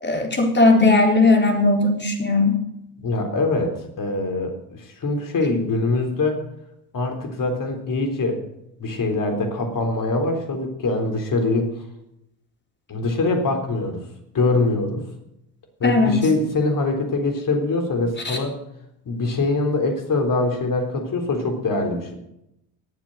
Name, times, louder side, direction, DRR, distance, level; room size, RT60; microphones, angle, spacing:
voice 1, 0.0-2.6 15.8-16.2 18.2-18.4, left 3 dB, 20° left, 2 dB, 4.0 m, -17 dB
voice 2, 3.0-6.4 6.9-8.4 8.8-11.7 12.9-14.0 14.3-15.0 15.8-18.6 19.1-22.1, left 2 dB, 40° left, 4 dB, 3.8 m, -23 dB
20.0 x 7.6 x 6.4 m, 0.83 s
hypercardioid pair, 60°, 50 cm